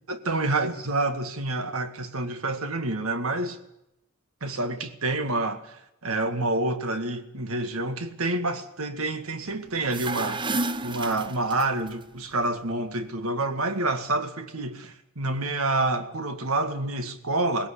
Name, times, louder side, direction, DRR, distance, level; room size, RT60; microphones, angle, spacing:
voice 1, 0.1-3.6 4.4-17.7, right 2 dB, 90° right, 1.9 m, -28 dB
sound 1, 9.8-11.9, right 2 dB, 25° right, 0.8 m, -31 dB
19.0 x 17.5 x 8.4 m
head